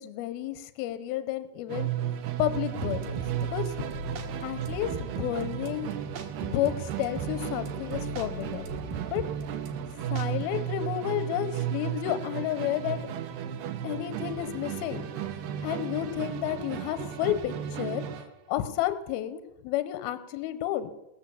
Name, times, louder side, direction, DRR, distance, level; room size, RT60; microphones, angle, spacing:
voice 1, 0.0-1.9 2.4-3.2 3.5-3.9 4.4-5.9 6.4-8.7 9.1-9.2 10.1-13.0 13.8-15.1 15.6-18.0 18.5-20.9, left 13 dB, 80° left, 11 dB, 2.3 m, -31 dB
Musical instrument, 1.7-18.4, right 10 dB, 85° right, 1.9 m, -34 dB
sound 1, 2.7-10.4, right 3 dB, 65° right, 2.3 m, -40 dB
20.5 x 7.1 x 7.0 m, 0.95 s
omnidirectional pair, 5.2 m